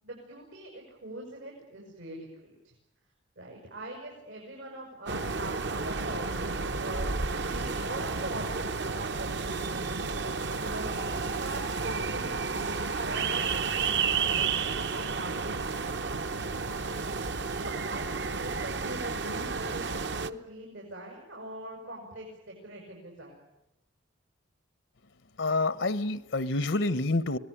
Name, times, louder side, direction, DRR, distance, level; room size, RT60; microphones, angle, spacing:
voice 1, 0.0-2.5 3.4-7.1 7.5-10.0 10.5-15.9 16.8-17.1 17.6-23.4, right 1 dB, 90° right, 0 dB, 7.1 m, -42 dB
sound 1, 5.1-20.3, right 4 dB, 60° right, 0.9 m, -31 dB
voice 2, 25.4-27.4, left 2 dB, 75° left, 16 dB, 0.9 m, -28 dB
25.5 x 19.0 x 9.9 m, 0.90 s
head